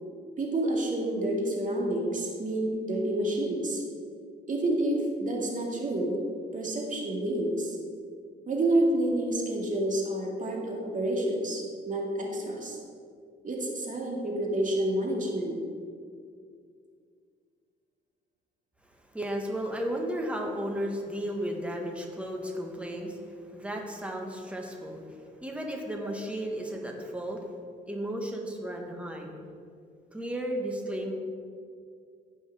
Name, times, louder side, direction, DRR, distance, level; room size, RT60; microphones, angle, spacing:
voice 1, 0.4-3.8 4.5-6.2 6.5-7.8 8.5-12.8 13.4-15.6 30.7-30.8, right 1 dB, 40° right, -1 dB, 2.1 m, -29 dB
voice 2, 18.8-27.4 27.9-29.3 30.1-31.1, equal, 5° right, 1 dB, 1.5 m, -34 dB
15.5 x 5.4 x 3.6 m, 2.2 s
cardioid pair, 90°, 20 cm